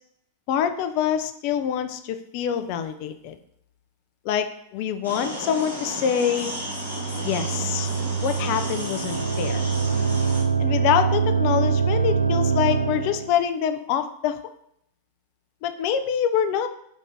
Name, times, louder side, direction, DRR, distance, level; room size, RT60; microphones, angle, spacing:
voice 1, 0.5-3.4 4.2-6.5 7.2-7.9 8.2-9.7 10.6-14.4 15.6-16.7, left 9 dB, 45° left, 9 dB, 0.3 m, -25 dB
sound 1, 5.0-10.4, equal, 85° left, 1.1 m, -33 dB
sound 2, 6.5-13.3, right 5 dB, 80° right, 0.4 m, -24 dB
4.0 x 2.6 x 3.4 m, 0.73 s
figure-of-eight pair, 90°, 0 cm